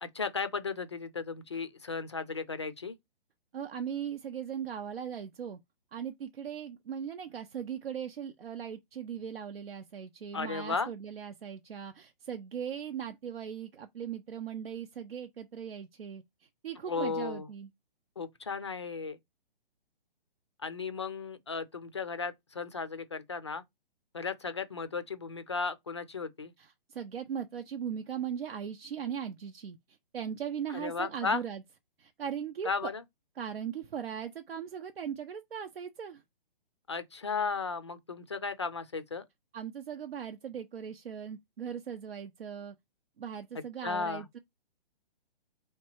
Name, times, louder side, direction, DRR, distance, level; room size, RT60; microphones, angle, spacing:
voice 1, 0.0-3.0 10.3-10.9 16.9-17.5 18.2-19.2 20.6-23.6 24.1-26.5 30.7-31.4 32.6-33.0 36.9-39.2 43.8-44.3, left 4 dB, 30° left, 0.3 m, -35 dB
voice 2, 3.5-5.6 5.9-17.7 26.6-31.6 32.0-32.9 33.4-36.2 39.5-42.8 43.2-44.4, right 8 dB, 90° right, 0.7 m, -39 dB
3.3 x 2.9 x 4.4 m
hypercardioid pair, 165°, 29 cm